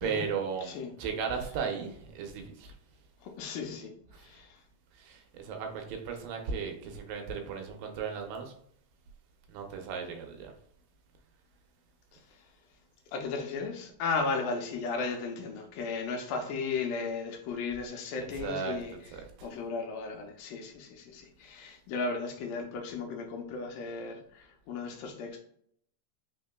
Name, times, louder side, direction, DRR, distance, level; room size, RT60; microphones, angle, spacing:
voice 1, 0.0-2.8 4.1-4.4 4.9-8.5 9.5-10.5 18.3-18.8 19.1-19.5, right 6 dB, 80° right, 2.3 m, -36 dB
voice 2, 3.2-4.6 12.1-12.4 13.1-18.9 19.4-25.4, left 4 dB, 85° left, 2.3 m, -35 dB
5.1 x 3.7 x 2.2 m
omnidirectional pair, 4.0 m